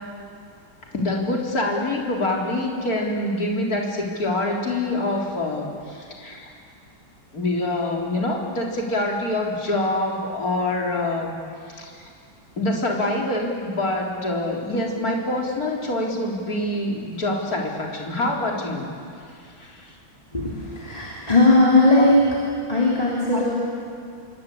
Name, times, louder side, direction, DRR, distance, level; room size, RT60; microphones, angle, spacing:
voice 1, 0.9-6.5 7.3-11.3 11.7-12.1 12.6-18.9 19.6-19.9 22.0-22.1 23.3-23.4, left 2 dB, 45° left, -1 dB, 4.3 m, -25 dB
voice 2, 20.3-22.2 22.7-23.5, left 2 dB, 20° left, -5 dB, 3.5 m, -18 dB
28.5 x 23.0 x 8.6 m, 2.3 s
omnidirectional pair, 2.1 m